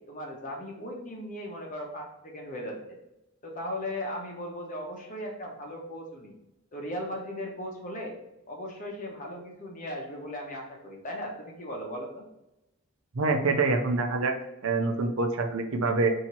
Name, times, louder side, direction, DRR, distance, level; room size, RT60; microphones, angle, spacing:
voice 1, 0.1-3.0 3.4-6.3 6.7-8.1 8.5-12.2, equal, 35° left, 0 dB, 1.1 m, -37 dB
voice 2, 13.1-14.3 14.6-16.1, right 3 dB, 70° right, 4 dB, 0.7 m, -25 dB
4.4 x 2.8 x 4.2 m, 0.90 s
head